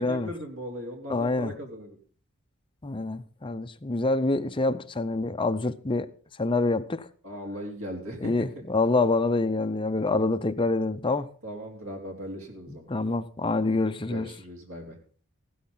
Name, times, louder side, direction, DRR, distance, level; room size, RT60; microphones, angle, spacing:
voice 1, 0.0-2.0 7.2-8.6 11.4-12.9 14.1-15.0, equal, 70° right, 3.7 m, -38 dB
voice 2, 1.1-1.5 2.8-6.1 6.4-7.1 8.2-11.3 12.7-14.3, left 2 dB, 25° left, 0.7 m, -26 dB
15.0 x 12.5 x 4.0 m
head